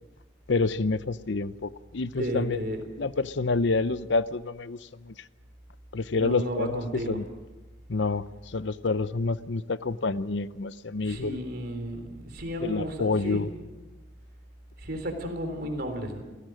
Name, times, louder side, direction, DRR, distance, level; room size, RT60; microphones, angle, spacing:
voice 1, 0.5-2.6 3.0-4.8 5.0-5.1 5.9-6.8 7.1-7.2 7.9-11.4 12.6-13.5, left 3 dB, 65° left, 15 dB, 0.7 m, -28 dB
voice 2, 2.2-2.8 6.1-7.2 11.0-13.4 14.8-16.2, equal, 50° right, 6 dB, 3.8 m, -33 dB
28.5 x 17.0 x 6.4 m, 1.2 s
head